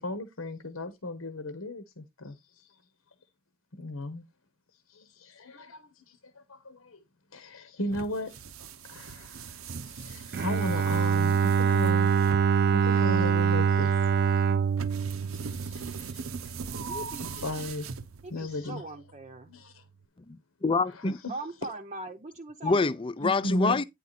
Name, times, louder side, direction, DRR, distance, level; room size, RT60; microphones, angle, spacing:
voice 1, 0.0-2.6 3.8-4.2 4.9-7.0 7.3-8.3 8.9-9.5 9.8-12.1 12.8-13.9 15.3-16.9 17.4-17.9 18.3-18.8 19.5-19.8 21.0-21.1 23.2-23.8, left 1 dB, 85° left, 1.2 m, -36 dB
sound 1, 7.9-18.5, right 5 dB, 75° right, 0.7 m, -41 dB
Bowed string instrument, 10.3-16.3, right 6 dB, 50° right, 0.4 m, -24 dB
voice 2, 16.9-17.3 18.2-19.5 21.3-22.9, right 2 dB, 35° right, 0.7 m, -40 dB
voice 3, 20.3-21.2 22.6-23.8, left 4 dB, 25° left, 0.5 m, -26 dB
9.7 x 4.7 x 4.1 m
head